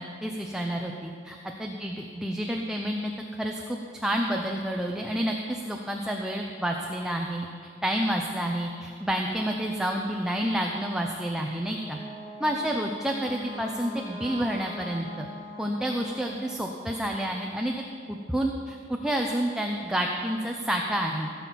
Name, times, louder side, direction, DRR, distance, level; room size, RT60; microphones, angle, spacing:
voice 1, 0.0-3.1 3.4-7.5 7.8-12.0 12.4-15.3 15.6-17.7 18.1-21.3, equal, 5° right, 1 dB, 0.7 m, -29 dB
Wind instrument woodwind instrument, 11.6-16.5, equal, 75° left, 1.9 m, -42 dB
16.5 x 7.3 x 5.9 m, 2.3 s
head